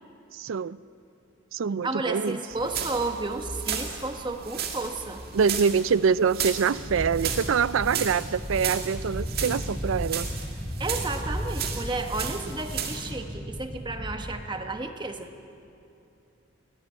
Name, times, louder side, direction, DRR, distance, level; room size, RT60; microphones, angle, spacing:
voice 1, 0.3-0.8 1.5-2.4 5.3-10.3, right 6 dB, 75° right, 19 dB, 0.4 m, -25 dB
voice 2, 1.8-5.2 10.8-15.3, right 3 dB, 20° right, 6 dB, 1.1 m, -32 dB
sound 1, 2.5-13.1, right 7 dB, 45° right, 2.0 m, -35 dB
sound 2, 6.7-14.3, equal, 15° left, 5.3 m, -35 dB
19.5 x 17.5 x 9.6 m, 2.7 s
head